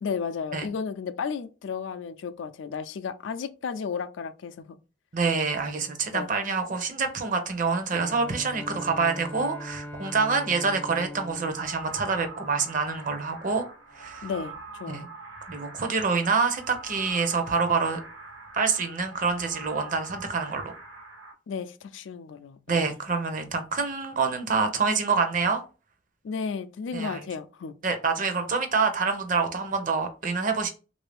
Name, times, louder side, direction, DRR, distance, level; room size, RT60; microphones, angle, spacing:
voice 1, 0.0-4.8 6.1-6.3 14.2-15.1 21.5-22.9 26.2-27.7, left 6 dB, 85° left, 0.4 m, -33 dB
voice 2, 5.1-13.7 13.9-14.3 14.9-15.1 15.5-18.0 18.5-20.7 22.7-25.6 26.9-27.3 27.8-30.7, right 4 dB, 45° right, 0.6 m, -26 dB
Bowed string instrument, 7.9-13.0, equal, 10° left, 0.4 m, -41 dB
sound 1, 11.5-21.3, right 3 dB, 80° right, 1.2 m, -44 dB
3.2 x 2.6 x 3.4 m
head